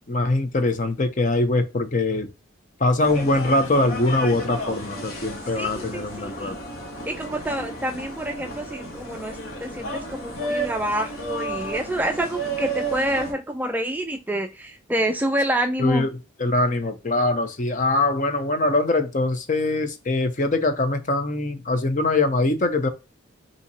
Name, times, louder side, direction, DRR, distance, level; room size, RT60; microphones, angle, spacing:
voice 1, 0.1-2.3 2.8-6.6 15.8-16.1 16.4-22.9, left 2 dB, 40° left, 0.7 m, -22 dB
sound 1, 3.0-13.3, right 2 dB, 90° left, 1.6 m, -32 dB
voice 2, 5.5-6.6 7.1-16.1, right 1 dB, 10° right, 0.3 m, -27 dB
5.6 x 2.8 x 2.8 m
head